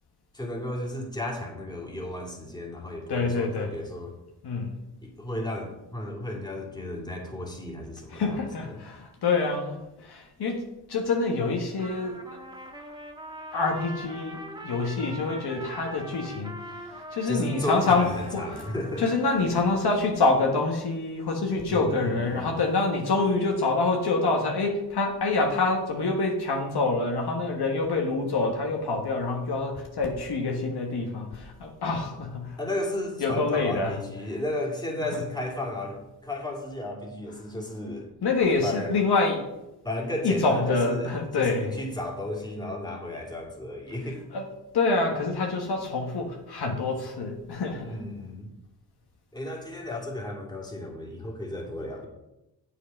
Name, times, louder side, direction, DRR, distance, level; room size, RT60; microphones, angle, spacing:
voice 1, 0.3-4.2 5.0-8.4 8.6-8.8 17.3-19.1 21.7-22.6 32.6-38.1 38.6-38.9 39.8-44.2 47.8-48.5 49.3-52.1, left 1 dB, 10° left, -1 dB, 2.5 m, -34 dB
voice 2, 3.1-3.7 4.4-4.8 8.1-12.2 13.5-14.4 14.6-16.6 17.1-18.6 19.0-32.6 33.2-34.0 38.2-39.5 40.2-41.7 44.3-44.4 44.7-48.0, left 3 dB, 65° left, 1 dB, 1.5 m, -26 dB
Trumpet, 11.8-19.7, right 1 dB, 10° right, 1.6 m, -42 dB
7.7 x 6.7 x 5.3 m, 0.94 s
cardioid pair, 75°, 43 cm